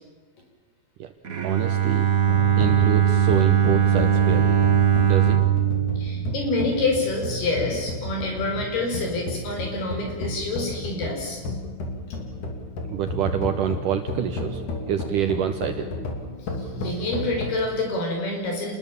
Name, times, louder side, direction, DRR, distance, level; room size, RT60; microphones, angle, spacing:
Bowed string instrument, 1.2-7.2, right 9 dB, 90° right, 0.7 m, -21 dB
voice 1, 1.4-2.1 2.6-4.6 5.0-5.4 12.9-14.6 14.9-15.9, right 10 dB, 70° right, 8 dB, 2.2 m, -27 dB
sound 1, 2.3-17.6, left 2 dB, 55° left, 4.1 m, -33 dB
voice 2, 6.0-11.4 16.6-18.8, left 2 dB, 75° left, 1 dB, 7.2 m, -27 dB
28.0 x 21.0 x 7.3 m, 1.3 s
omnidirectional pair, 4.5 m